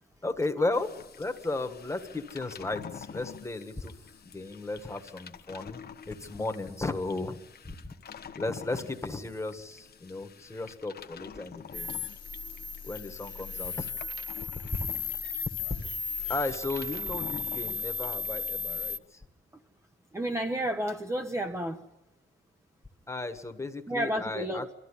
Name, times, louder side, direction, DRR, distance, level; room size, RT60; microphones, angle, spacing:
voice 1, 0.2-4.0 4.2-7.4 7.6-7.9 8.3-11.9 12.8-13.9 16.3-19.2 23.1-24.7, left 2 dB, 15° left, 1.5 m, -35 dB
sound 1, 0.7-19.0, left 7 dB, 50° left, 1.0 m, -48 dB
sound 2, 11.7-19.0, left 4 dB, 70° left, 1.2 m, -35 dB
voice 2, 20.1-21.8 23.9-24.7, right 1 dB, 15° right, 0.9 m, -31 dB
24.5 x 14.0 x 10.0 m
wide cardioid pair, 160°, 20 cm